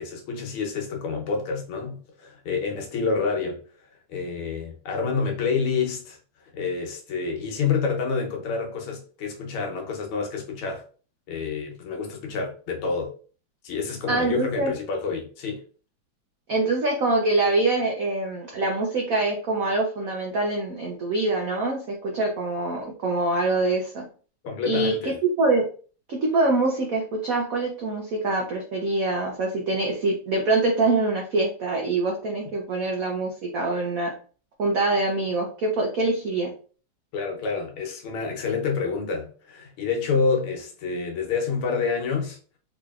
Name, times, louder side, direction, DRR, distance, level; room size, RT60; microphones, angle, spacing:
voice 1, 0.0-3.6 4.1-6.2 6.5-10.8 11.3-13.1 13.6-15.6 24.4-25.2 37.1-42.4, left 5 dB, 80° left, 1.8 m, -28 dB
voice 2, 14.1-14.7 16.5-24.0 24.7-25.7 26.1-34.1 34.6-36.5, right 2 dB, 85° right, 0.7 m, -24 dB
4.1 x 3.0 x 2.3 m
omnidirectional pair, 2.4 m